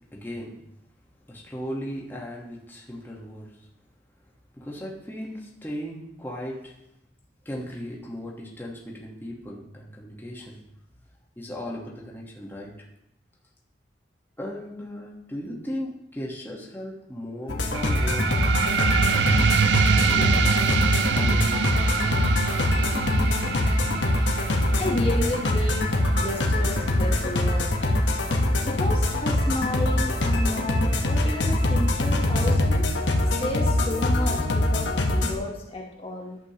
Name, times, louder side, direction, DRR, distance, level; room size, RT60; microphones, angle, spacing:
voice 1, 0.1-0.6 1.3-3.5 4.5-6.7 7.4-10.6 11.4-12.7 14.4-18.4 19.0-22.3, equal, 10° left, -3 dB, 1.2 m, -37 dB
sound 1, 17.5-35.3, left 1 dB, 80° left, 1.0 m, -23 dB
sound 2, 17.7-28.8, right 6 dB, 70° right, 0.4 m, -26 dB
voice 2, 24.7-27.7 28.6-32.9 33.3-36.4, left 1 dB, 35° left, -1 dB, 1.1 m, -32 dB
11.5 x 7.3 x 2.9 m, 0.82 s
head